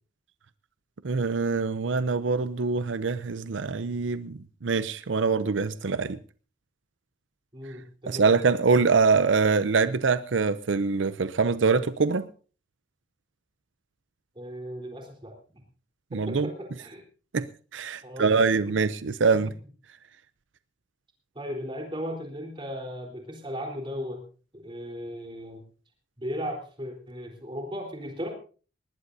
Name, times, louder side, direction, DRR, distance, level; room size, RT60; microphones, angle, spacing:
voice 1, 1.0-6.2 8.1-12.2 16.1-16.5 17.3-17.5 17.7-19.5, right 4 dB, 80° right, 0.6 m, -24 dB
voice 2, 7.5-8.3 14.4-15.4 16.1-17.0 18.0-18.6 19.3-19.4 21.4-24.2 24.5-25.6 26.2-28.3, equal, 25° right, 3.8 m, -36 dB
19.5 x 19.5 x 2.7 m
head